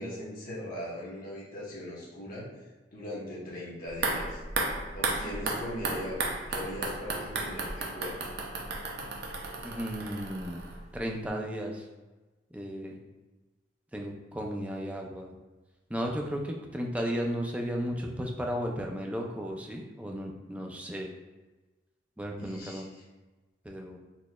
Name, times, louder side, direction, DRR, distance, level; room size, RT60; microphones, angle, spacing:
voice 1, 0.0-2.5 2.9-4.4 4.9-8.2 22.4-23.0, left 1 dB, 50° left, -6 dB, 1.0 m, -39 dB
sound 1, 3.9-11.0 11.3-11.4, right 3 dB, 60° right, 0.6 m, -34 dB
voice 2, 9.6-10.6 10.9-11.8 12.5-13.0 13.9-15.3 15.9-21.1 22.2-22.9 23.6-24.0, equal, 5° right, 0 dB, 0.4 m, -34 dB
4.1 x 3.1 x 2.2 m, 1.2 s
head